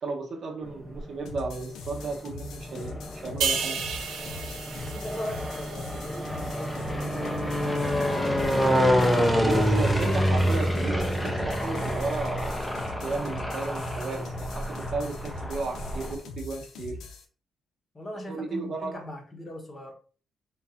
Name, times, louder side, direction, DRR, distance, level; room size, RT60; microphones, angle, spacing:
voice 1, 0.0-3.8 9.4-12.7 13.0-17.0 18.3-19.0, right 3 dB, 45° right, 0.8 m, -34 dB
sound 1, 0.6-1.4 2.1-16.2, equal, 5° left, 0.5 m, -27 dB
sound 2, 1.3-17.3, left 3 dB, 85° left, 0.7 m, -42 dB
sound 3, 3.4-6.9 7.3-7.5, right 6 dB, 80° right, 0.8 m, -33 dB
voice 2, 4.8-8.3 17.9-19.9, equal, 25° left, 0.9 m, -40 dB
3.8 x 2.4 x 4.1 m
cardioid pair, 165°, 0 cm